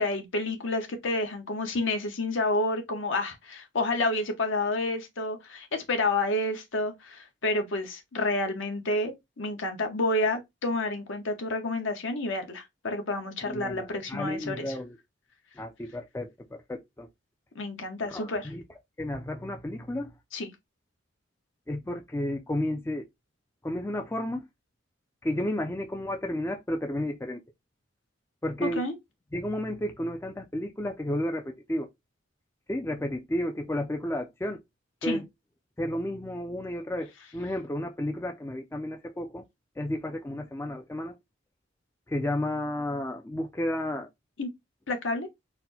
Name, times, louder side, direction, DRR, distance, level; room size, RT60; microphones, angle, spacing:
voice 1, 0.0-14.7 17.5-18.5 20.3-20.5 28.6-28.9 35.0-35.2 44.4-44.5 44.9-45.3, left 2 dB, 70° left, 1.1 m, -29 dB
voice 2, 13.4-15.0 15.6-17.1 18.1-18.6 19.0-20.1 21.7-23.1 23.6-24.5 25.2-27.4 28.4-28.9 29.3-31.9 32.7-34.6 35.0-35.3 35.8-39.4 39.8-41.1 42.1-44.1, left 1 dB, 10° left, 0.4 m, -32 dB
4.1 x 2.1 x 4.1 m
head